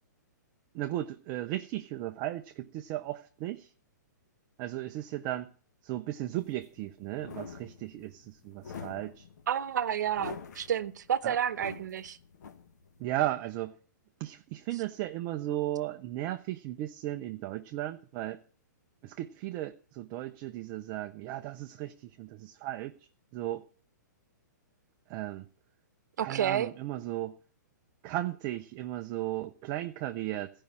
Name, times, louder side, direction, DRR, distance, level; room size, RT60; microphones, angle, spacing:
voice 1, 0.7-3.7 4.6-5.5 5.8-9.2 11.2-11.4 13.0-13.7 14.2-18.4 19.0-23.0 23.3-23.7 25.1-25.5 26.2-27.4 28.0-30.5, right 14 dB, 25° right, 0.5 m, -35 dB
sound 1, 6.4-13.0, left 5 dB, 60° left, 1.2 m, -46 dB
voice 2, 9.5-12.2 26.2-26.7, right 9 dB, 65° right, 0.9 m, -30 dB
14.5 x 5.3 x 8.6 m
hypercardioid pair, 160°, 10 cm